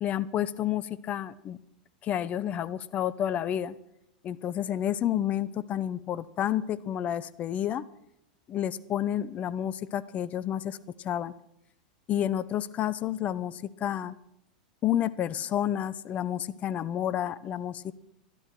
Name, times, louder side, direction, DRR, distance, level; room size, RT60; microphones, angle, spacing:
voice 1, 0.0-1.6 2.0-3.7 4.2-7.8 8.5-11.3 12.1-14.1 14.8-17.9, left 11 dB, 30° left, 18 dB, 0.7 m, -30 dB
13.5 x 12.0 x 6.1 m, 0.80 s
figure-of-eight pair, 90°, 4 cm